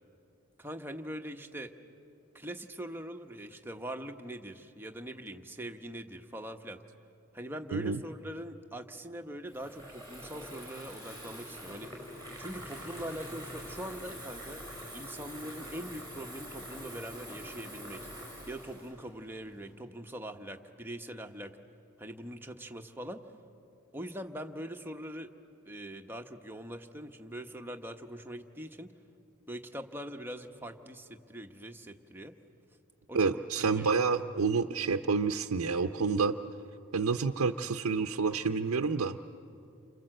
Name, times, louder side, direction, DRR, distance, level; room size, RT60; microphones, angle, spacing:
voice 1, 0.6-1.7 2.3-6.8 7.3-11.9 12.4-14.6 14.9-18.0 18.5-21.5 22.0-23.2 23.9-25.3 25.7-28.9 29.5-32.3 33.1-33.9, right 1 dB, 10° right, 4 dB, 1.0 m, -42 dB
Water tap faucet / Fill (with liquid), 9.5-19.7, equal, 10° left, 5.7 m, -45 dB
voice 2, 33.1-36.3 36.9-39.2, right 4 dB, 85° right, 5 dB, 0.7 m, -29 dB
29.0 x 26.0 x 7.7 m, 2.7 s
head